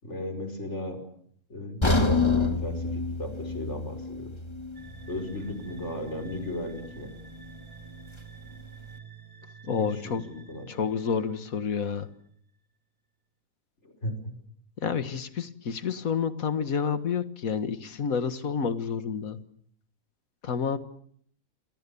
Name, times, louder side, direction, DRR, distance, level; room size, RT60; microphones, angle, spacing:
voice 1, 0.0-1.0 1.5-4.3 5.1-7.1 9.8-10.7 13.8-14.3, left 1 dB, 50° left, 8 dB, 5.6 m, -36 dB
sound 1, 1.8-5.9 6.2-6.4 7.0-7.1, left 3 dB, 20° left, 2.0 m, -28 dB
sound 2, 4.7-12.3, right 6 dB, 20° right, 8.0 m, -48 dB
voice 2, 9.6-10.2 10.7-12.1 14.8-19.4 20.4-20.8, left 6 dB, 70° left, 11 dB, 2.0 m, -29 dB
28.5 x 27.0 x 7.0 m, 0.64 s
omnidirectional pair, 1.5 m